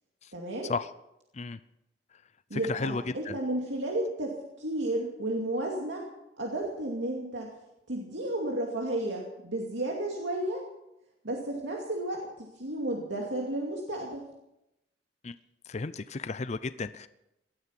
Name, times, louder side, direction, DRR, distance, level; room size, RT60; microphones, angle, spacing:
voice 1, 0.3-0.7 2.5-6.1 6.4-7.5 7.9-10.7 11.2-14.2, right 1 dB, 75° right, -1 dB, 2.4 m, -32 dB
voice 2, 2.5-3.4 15.2-15.4 15.7-17.1, left 4 dB, 35° left, 14 dB, 0.5 m, -34 dB
18.5 x 13.0 x 5.9 m, 0.89 s
head